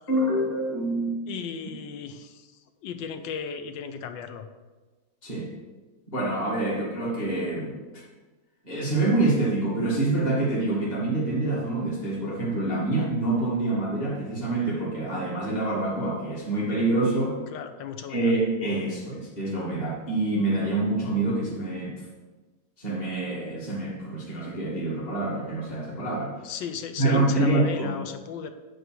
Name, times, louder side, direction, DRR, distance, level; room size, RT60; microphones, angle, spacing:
voice 1, 0.1-1.2 5.2-5.5 6.1-8.0 8.6-17.4 18.1-22.0 22.8-26.3 27.0-27.9, right 2 dB, 20° left, -6 dB, 2.1 m, -26 dB
voice 2, 1.3-4.5 17.5-18.3 26.4-28.5, left 7 dB, 75° left, 8 dB, 1.3 m, -36 dB
9.1 x 4.4 x 6.2 m, 1.2 s
omnidirectional pair, 2.1 m